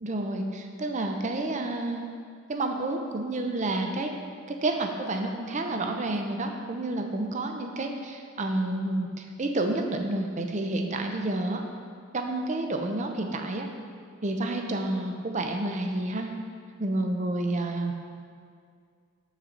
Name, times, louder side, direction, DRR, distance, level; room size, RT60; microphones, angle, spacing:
voice 1, 0.0-2.1 2.5-4.1 4.5-11.6 12.1-13.7 14.2-16.3 16.8-17.9, right 2 dB, 35° right, 4 dB, 0.6 m, -29 dB
7.4 x 6.3 x 3.8 m, 2.2 s
head